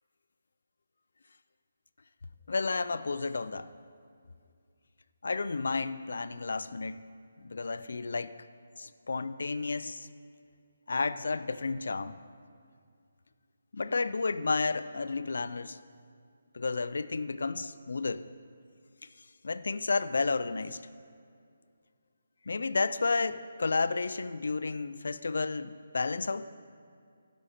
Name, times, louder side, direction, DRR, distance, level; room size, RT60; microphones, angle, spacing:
voice 1, 2.5-3.7 5.2-7.0 7.4-8.3 8.8-10.1 10.9-12.2 13.7-15.8 16.5-18.3 19.2-20.8 22.5-26.5, left 4 dB, 65° left, 13 dB, 0.4 m, -32 dB
16.0 x 6.3 x 4.3 m, 2.3 s
hypercardioid pair, 175°, 0 cm